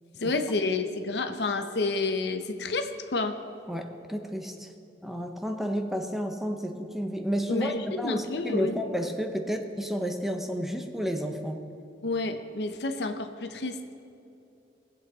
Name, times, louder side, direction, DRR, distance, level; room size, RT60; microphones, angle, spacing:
voice 1, 0.1-3.4 7.5-8.8 12.0-13.8, left 3 dB, 70° left, 7 dB, 0.8 m, -29 dB
voice 2, 3.7-4.7 5.0-11.6, equal, ahead, 4 dB, 0.7 m, -31 dB
20.5 x 8.0 x 4.0 m, 2.8 s
head